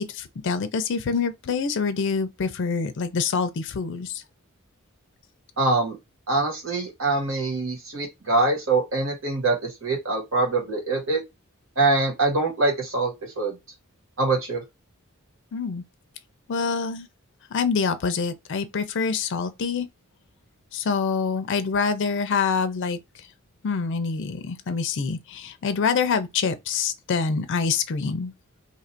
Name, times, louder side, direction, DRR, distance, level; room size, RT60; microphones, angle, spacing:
voice 1, 0.0-4.2 15.5-15.8 16.5-17.1 17.5-19.9 20.7-23.0 23.6-28.3, left 5 dB, 60° left, 0.4 m, -26 dB
voice 2, 5.6-6.0 6.3-11.2 11.8-13.5 14.2-14.6, right 3 dB, 65° right, 1.5 m, -24 dB
2.8 x 2.5 x 4.3 m
head